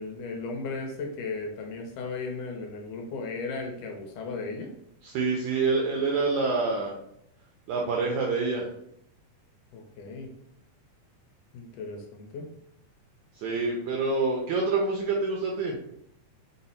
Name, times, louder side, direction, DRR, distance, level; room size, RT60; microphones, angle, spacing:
voice 1, 0.0-4.7 9.7-10.3 11.5-12.5, left 3 dB, 75° left, 2 dB, 2.0 m, -36 dB
voice 2, 5.0-7.0 7.7-8.7 13.4-15.8, right 3 dB, 80° right, 0 dB, 1.6 m, -27 dB
5.2 x 2.0 x 4.0 m, 0.72 s
omnidirectional pair, 3.8 m